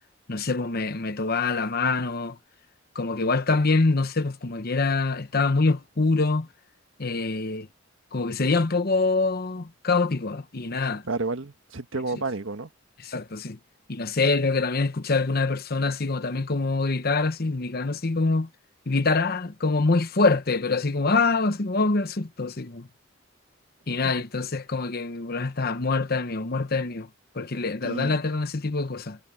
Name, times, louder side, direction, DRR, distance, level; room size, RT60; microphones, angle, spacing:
voice 1, 0.3-2.4 2.9-6.5 7.0-7.7 8.1-11.0 13.0-13.6 13.9-18.5 18.9-22.9 23.9-27.1 27.3-29.2, left 3 dB, 50° left, 1.0 m, -25 dB
voice 2, 11.0-12.7 24.0-24.1 27.8-28.2, right 3 dB, 70° right, 1.4 m, -31 dB
head